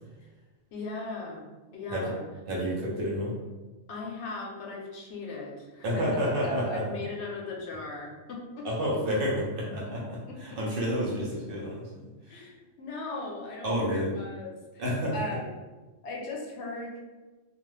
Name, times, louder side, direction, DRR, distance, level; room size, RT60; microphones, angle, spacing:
voice 1, 0.7-2.2 3.9-9.0 9.9-10.9 12.3-14.8 15.1-15.5 16.0-17.0, left 2 dB, 70° left, -1 dB, 0.9 m, -38 dB
voice 2, 2.5-3.4 5.8-7.0 8.6-12.4 13.6-14.1 14.8-15.2, equal, 55° right, -4 dB, 0.8 m, -30 dB
2.4 x 2.3 x 3.1 m, 1.2 s
omnidirectional pair, 1.2 m